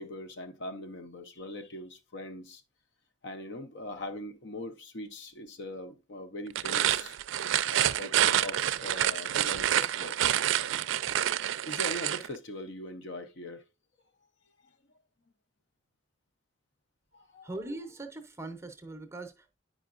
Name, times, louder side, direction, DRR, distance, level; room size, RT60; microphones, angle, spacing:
voice 1, 0.0-2.6 3.2-7.2 7.7-10.2 11.2-11.3 11.7-13.6 17.1-17.5, left 1 dB, 60° left, 0.6 m, -41 dB
sound 1, 6.5-12.3, right 11 dB, 75° right, 0.4 m, -28 dB
voice 2, 17.4-19.6, right 2 dB, 15° right, 0.7 m, -41 dB
9.4 x 5.0 x 2.4 m
head